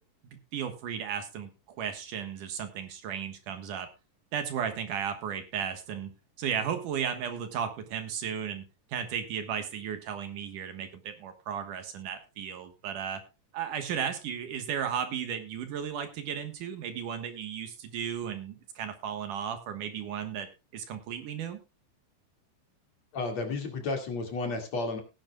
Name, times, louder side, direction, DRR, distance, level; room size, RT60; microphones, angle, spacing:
voice 1, 0.3-3.9 4.3-8.6 8.9-13.2 13.5-20.5 20.7-21.6, right 8 dB, 70° right, 8 dB, 2.7 m, -35 dB
voice 2, 23.1-25.0, left 3 dB, 50° left, 4 dB, 3.2 m, -32 dB
18.0 x 10.5 x 2.3 m, 0.28 s
omnidirectional pair, 4.1 m